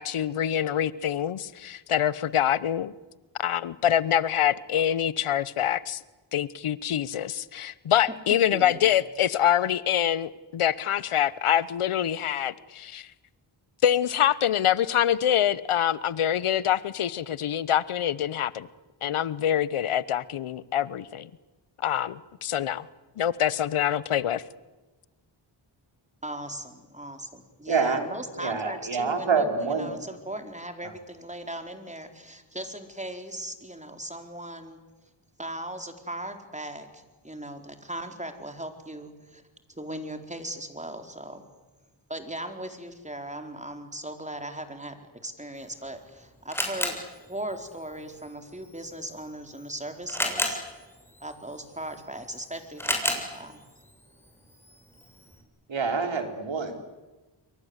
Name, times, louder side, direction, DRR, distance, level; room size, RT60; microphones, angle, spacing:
voice 1, 0.0-2.9 3.4-6.0 6.3-13.1 13.8-18.7 19.0-21.3 21.8-22.9 23.2-24.4, left 10 dB, 80° left, 19 dB, 1.0 m, -25 dB
voice 2, 8.3-8.9 26.2-34.8 35.4-39.4 39.8-41.4 42.1-45.0 45.2-50.6 51.2-53.6, right 1 dB, 15° right, 6 dB, 4.5 m, -38 dB
voice 3, 27.7-28.1 28.4-30.0 30.8-30.9 55.7-56.8, right 5 dB, 65° right, 6 dB, 4.4 m, -27 dB
Camera, 45.6-55.4, left 1 dB, 5° left, 7.2 m, -35 dB
29.0 x 23.0 x 8.2 m, 1.2 s
cardioid pair, 50°, 49 cm